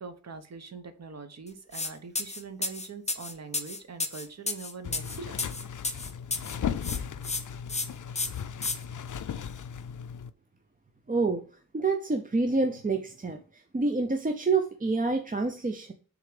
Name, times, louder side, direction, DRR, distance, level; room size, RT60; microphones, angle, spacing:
voice 1, 0.0-5.6, right 4 dB, 50° right, 8 dB, 1.0 m, -43 dB
sound 1, 1.7-1.9 2.2-6.6 6.8-7.4 7.7-7.9 8.2-8.8, left 3 dB, 20° left, 0.8 m, -32 dB
sound 2, 4.8-10.3, left 8 dB, 60° left, 0.5 m, -36 dB
voice 2, 11.1-11.4 11.7-13.4 13.7-15.9, right 3 dB, 25° right, 5 dB, 0.6 m, -27 dB
6.9 x 3.7 x 4.9 m, 0.40 s
wide cardioid pair, 145°, 34 cm